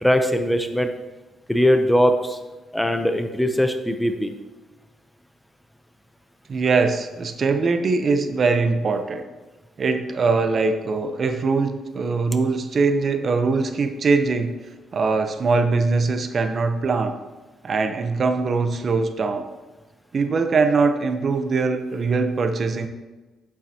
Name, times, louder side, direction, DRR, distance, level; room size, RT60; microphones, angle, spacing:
voice 1, 0.0-0.9 1.5-2.4 2.7-4.3, equal, 5° left, 7 dB, 0.7 m, -20 dB
voice 2, 6.5-9.2 9.8-14.5 14.9-17.2 17.6-19.5 20.1-22.9, right 4 dB, 45° right, 8 dB, 0.7 m, -22 dB
8.7 x 7.4 x 2.9 m, 1.2 s
cardioid pair, 90°, 0 cm